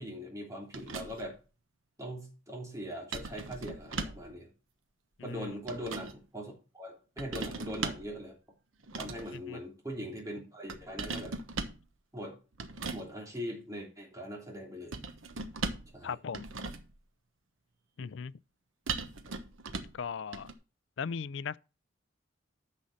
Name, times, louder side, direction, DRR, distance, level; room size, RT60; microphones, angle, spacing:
voice 1, 0.0-1.4 2.0-4.5 5.2-8.4 8.9-11.4 12.1-12.4 12.9-15.0 15.9-16.2 18.0-18.1, equal, 15° right, 3.2 m, -41 dB
sound 1, 0.7-1.4 3.1-4.3 5.3-6.2 7.2-8.1 8.8-9.4 10.7-11.8 12.6-13.1 14.9-16.0 16.3-17.0 18.9-20.0 20.3-20.5, right 4 dB, 85° right, 1.1 m, -38 dB
voice 2, 5.2-5.6 9.3-9.6 16.0-16.5 18.0-18.3 19.9-20.5 21.0-21.6, left 6 dB, 65° left, 0.4 m, -38 dB
9.8 x 6.5 x 4.1 m
head